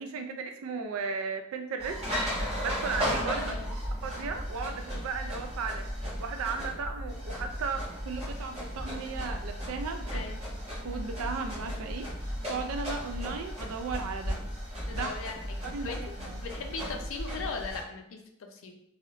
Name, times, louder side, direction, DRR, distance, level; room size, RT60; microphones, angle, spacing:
voice 1, 0.0-2.0 2.4-3.5 4.0-10.2 10.8-14.4 14.7-15.1 15.7-15.9 16.2-16.4, right 5 dB, 80° right, 5 dB, 0.4 m, -36 dB
sound 1, 1.8-17.8, equal, 30° right, 1.1 m, -35 dB
voice 2, 3.3-3.8 10.1-10.4 14.9-16.0 16.4-18.8, left 4 dB, 70° left, 4 dB, 0.5 m, -39 dB
3.1 x 2.8 x 2.4 m, 0.74 s
head